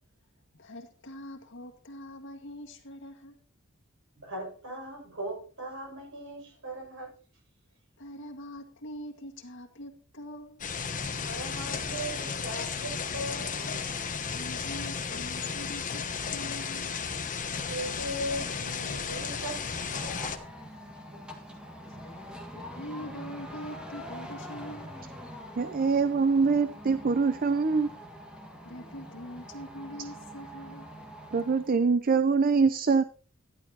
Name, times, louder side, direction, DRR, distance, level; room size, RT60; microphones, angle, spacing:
voice 1, 0.5-3.4 8.0-10.6 14.2-17.0 22.3-24.9 28.6-30.9, equal, 60° left, 1.8 m, -43 dB
voice 2, 4.2-7.1 11.2-13.5 17.7-20.4, right 1 dB, 70° right, 5.8 m, -38 dB
sound 1, 10.6-20.4, left 6 dB, 40° left, 1.0 m, -34 dB
sound 2, 19.0-31.8, equal, 5° right, 1.8 m, -44 dB
voice 3, 25.6-27.9 31.3-33.0, right 4 dB, 45° right, 0.5 m, -24 dB
11.5 x 11.0 x 2.9 m
head